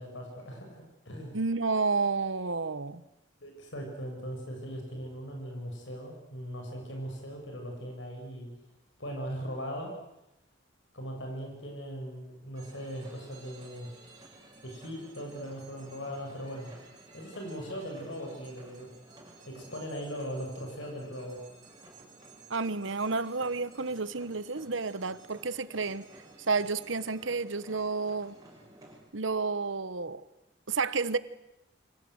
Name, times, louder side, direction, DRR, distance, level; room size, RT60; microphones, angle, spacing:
voice 1, 0.0-1.4 3.4-8.5 9.0-10.0 10.9-13.9 14.6-16.7 17.1-18.9 19.5-21.4, equal, 70° left, 1 dB, 7.0 m, -39 dB
voice 2, 1.3-3.0 22.5-26.1 26.5-28.3 29.1-30.2 30.7-31.2, right 4 dB, 75° right, 15 dB, 1.2 m, -30 dB
sound 1, 12.5-29.0, right 2 dB, 20° right, 7.5 m, -54 dB
29.0 x 25.0 x 8.0 m, 0.90 s
head